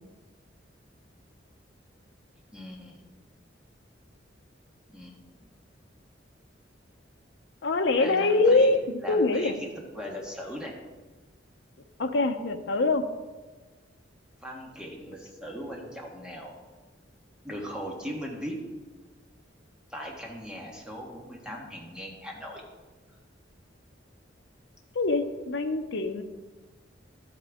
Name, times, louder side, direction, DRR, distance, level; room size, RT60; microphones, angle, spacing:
voice 1, 2.5-3.0 4.9-5.4 8.0-8.7 9.0-10.7 14.4-16.6 17.4-18.6 19.9-22.6, equal, 5° right, -1 dB, 1.5 m, -39 dB
voice 2, 7.6-9.6 12.0-13.0 24.9-26.2, left 3 dB, 65° left, 7 dB, 0.7 m, -24 dB
12.0 x 8.8 x 3.6 m, 1.3 s
head